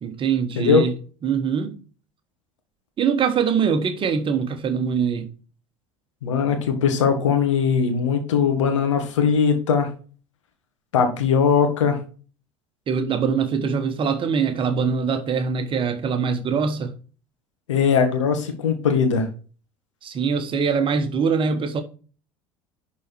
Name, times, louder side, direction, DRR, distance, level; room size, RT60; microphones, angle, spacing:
voice 1, 0.0-0.9 1.2-1.7 3.0-5.3 12.9-16.9 20.0-21.8, right 6 dB, 30° right, 1.2 m, -23 dB
voice 2, 6.2-9.9 10.9-12.0 17.7-19.3, left 6 dB, 65° left, 1.7 m, -20 dB
11.0 x 4.2 x 4.4 m
figure-of-eight pair, 70°, 17 cm